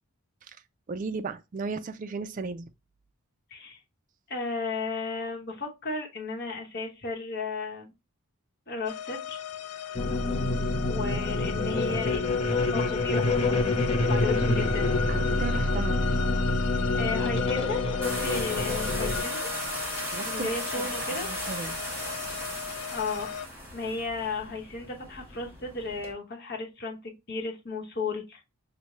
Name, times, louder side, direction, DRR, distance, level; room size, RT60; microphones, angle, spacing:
voice 1, 0.9-2.7 15.1-16.0 20.1-21.8, right 4 dB, 35° right, 0.3 m, -35 dB
voice 2, 3.5-3.8 4.3-7.9 8.7-9.4 10.9-15.0 16.9-19.5 20.1-21.3 22.9-23.3 23.7-28.4, left 3 dB, 45° left, 1.0 m, -34 dB
sound 1, 8.9-23.5, left 8 dB, 85° left, 0.4 m, -36 dB
sound 2, 9.9-19.2, left 2 dB, 25° left, 0.5 m, -27 dB
sound 3, 18.0-26.1, right 1 dB, 10° right, 1.3 m, -37 dB
5.8 x 2.2 x 3.0 m
head